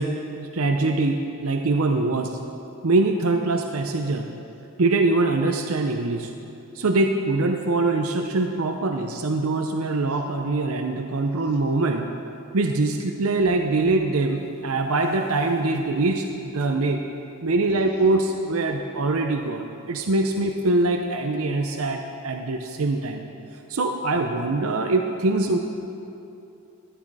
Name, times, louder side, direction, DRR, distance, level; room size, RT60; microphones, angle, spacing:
voice 1, 0.0-2.4 2.8-4.3 4.8-6.3 6.7-12.1 12.5-17.0 17.4-23.2 23.7-25.6, right 2 dB, 80° right, 4 dB, 0.7 m, -23 dB
13.5 x 11.0 x 4.8 m, 2.7 s
head